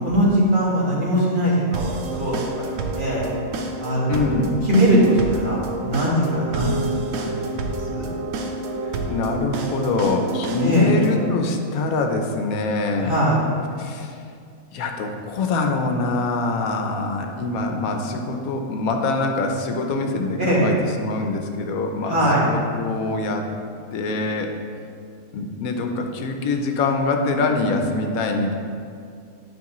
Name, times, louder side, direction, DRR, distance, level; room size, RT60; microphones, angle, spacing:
voice 1, 0.0-2.7 3.0-3.3 3.8-4.2 4.7-7.5 7.9-8.1 10.6-10.9 13.0-13.4 20.4-20.7 22.1-22.4, right 1 dB, 35° right, -7 dB, 1.6 m, -21 dB
sound 1, 1.7-11.3, right 2 dB, 75° right, 1.1 m, -29 dB
voice 2, 4.1-4.5 8.8-13.2 13.8-14.2 14.7-23.5 23.9-24.5 25.3-28.5, left 3 dB, 85° left, 4 dB, 1.1 m, -24 dB
9.5 x 5.3 x 3.0 m, 2.3 s
omnidirectional pair, 1.5 m